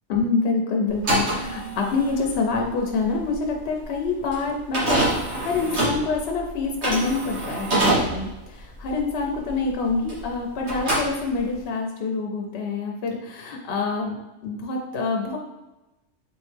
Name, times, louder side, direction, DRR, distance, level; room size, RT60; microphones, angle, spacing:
voice 1, 0.1-5.0 5.3-14.2 14.4-15.4, left 4 dB, 65° left, 1 dB, 0.9 m, -26 dB
sound 1, 0.9-10.4 10.6-11.7, right 1 dB, 65° right, 1.7 m, -26 dB
4.1 x 3.1 x 3.3 m, 1.0 s
omnidirectional pair, 1.3 m